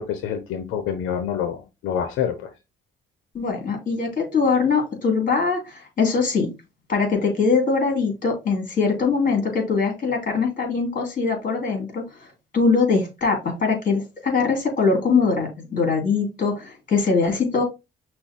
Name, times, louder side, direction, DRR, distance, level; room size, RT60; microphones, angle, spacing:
voice 1, 0.0-2.5, left 8 dB, 85° left, 0.7 m, -27 dB
voice 2, 3.3-6.5 6.9-12.0 12.5-17.6, left 4 dB, 45° left, 2.8 m, -22 dB
6.0 x 2.2 x 3.6 m
cardioid pair, 90°, 20 cm